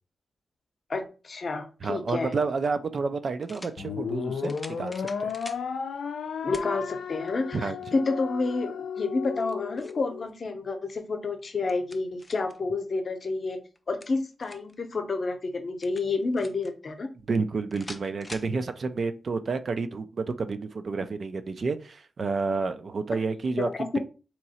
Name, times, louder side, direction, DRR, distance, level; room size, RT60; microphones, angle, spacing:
voice 1, 0.9-2.3 6.4-13.6 13.9-17.1 23.6-24.0, left 3 dB, 45° left, 0.7 m, -29 dB
voice 2, 1.8-5.3 7.5-7.8 17.3-23.7, right 4 dB, 45° right, 0.4 m, -30 dB
sound 1, 2.2-2.3 3.4-3.8 4.4-5.7 6.5-6.7 7.3-7.4 9.2-10.1 11.4-12.6 13.8-14.8 15.8-16.7 17.7-18.5, left 2 dB, 15° left, 0.4 m, -45 dB
sound 2, 3.8-10.3, left 6 dB, 85° left, 0.5 m, -34 dB
3.6 x 2.9 x 4.2 m
wide cardioid pair, 130°, 0 cm